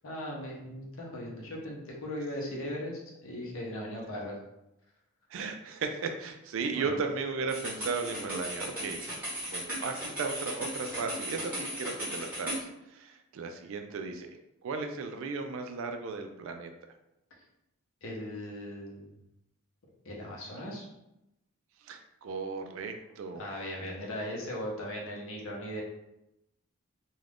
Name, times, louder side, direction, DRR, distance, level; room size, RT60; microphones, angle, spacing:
voice 1, 0.0-4.4 6.7-7.0 18.0-19.2 20.0-20.9 23.3-25.8, left 1 dB, 65° left, -2 dB, 0.8 m, -38 dB
voice 2, 5.3-9.0 9.5-14.3 14.6-16.7 21.8-23.5 23.8-23.9, right 4 dB, 65° right, 6 dB, 0.3 m, -36 dB
sound 1, 7.5-12.6, right 1 dB, 5° right, 1.0 m, -37 dB
2.4 x 2.2 x 3.3 m, 0.88 s
head